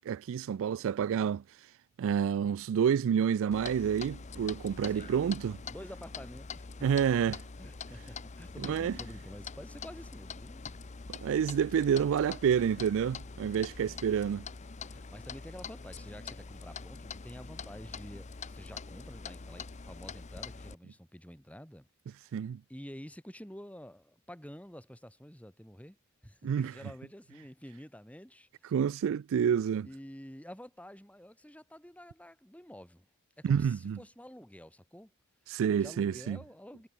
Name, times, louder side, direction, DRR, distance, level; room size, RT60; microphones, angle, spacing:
voice 1, 0.1-1.4 2.0-5.6 6.8-7.4 8.6-9.0 11.1-14.5 22.3-22.6 26.4-26.7 28.7-29.9 33.4-34.0 35.5-36.4, right 8 dB, 60° right, 0.3 m, -28 dB
Clock, 3.5-20.7, left 5 dB, 30° left, 0.7 m, -44 dB
voice 2, 4.8-6.9 7.6-10.6 13.8-14.1 14.8-22.4 22.7-26.0 26.2-28.8 29.8-33.1 33.4-35.1 35.8-36.9, equal, 5° left, 6.5 m, -49 dB
head